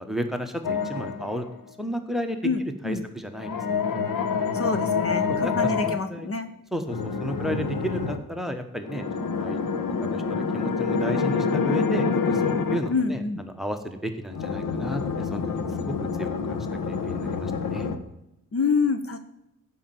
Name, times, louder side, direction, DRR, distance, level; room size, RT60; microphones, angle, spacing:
voice 1, 0.0-1.4 1.8-3.5 5.3-6.3 6.7-9.6 10.0-15.0 15.3-15.4 15.8-17.9, equal, ahead, 7 dB, 1.1 m, -33 dB
sound 1, 0.6-1.5 3.4-6.0 6.9-8.2 8.8-12.9 14.3-18.0, left 5 dB, 80° left, 1.2 m, -27 dB
voice 2, 2.4-3.1 4.5-6.5 12.9-13.4 18.5-19.2, left 4 dB, 45° left, 9 dB, 0.9 m, -26 dB
14.5 x 5.5 x 7.8 m, 0.86 s
wide cardioid pair, 135°, 33 cm